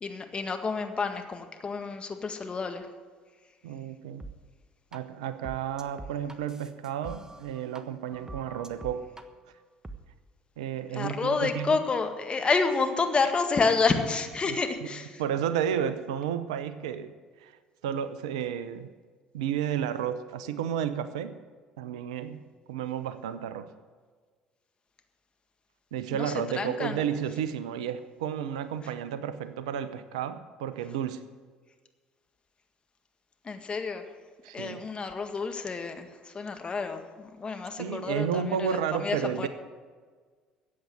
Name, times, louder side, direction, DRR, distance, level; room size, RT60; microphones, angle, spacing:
voice 1, 0.0-2.9 10.9-15.2 26.1-27.0 33.4-34.0 34.5-39.5, left 4 dB, 30° left, 6 dB, 1.8 m, -29 dB
voice 2, 3.6-4.3 4.9-9.1 10.6-11.8 14.5-14.6 15.2-17.1 17.4-17.5 17.8-18.9 19.3-21.3 21.8-22.4 22.7-23.7 25.9-31.2 34.4-34.8 37.8-39.5, right 9 dB, 75° right, 13 dB, 0.8 m, -32 dB
sound 1, 4.2-4.3 4.9-5.0 5.4-7.8 8.1-9.2 9.8-10.0, right 2 dB, 15° right, 1.3 m, -43 dB
14.0 x 8.6 x 7.8 m, 1.5 s
hypercardioid pair, 60°, 4 cm